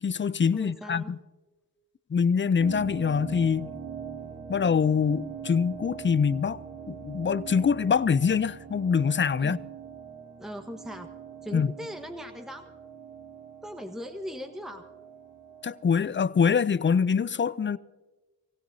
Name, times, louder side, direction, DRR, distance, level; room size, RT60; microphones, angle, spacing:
voice 1, 0.0-1.2 2.1-3.7 4.5-6.6 6.9-9.6 11.5-11.7 15.6-17.8, left 6 dB, 30° left, 0.5 m, -24 dB
voice 2, 0.5-1.1 9.4-9.6 10.4-11.1 11.4-12.7 13.6-14.9, equal, ahead, 1.3 m, -39 dB
sound 1, 2.6-15.9, right 7 dB, 55° right, 2.7 m, -43 dB
25.0 x 15.5 x 2.7 m
supercardioid pair, 40°, 41 cm